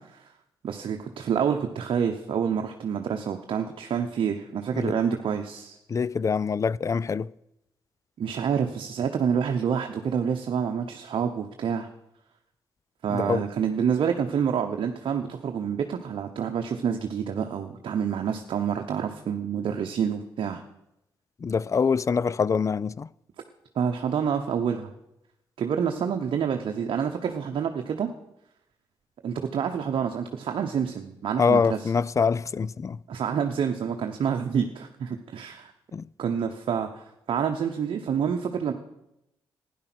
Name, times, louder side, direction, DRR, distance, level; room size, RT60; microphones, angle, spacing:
voice 1, 0.6-5.8 8.2-11.9 13.0-20.6 23.7-24.9 25.6-28.1 29.2-31.9 33.1-35.7 36.2-38.7, right 7 dB, 65° right, 0.9 m, -28 dB
voice 2, 5.9-7.3 13.1-13.5 21.4-23.1 31.4-33.0 35.9-36.1, left 5 dB, 35° left, 0.3 m, -25 dB
12.0 x 10.5 x 6.1 m
cardioid pair, 60°, 9 cm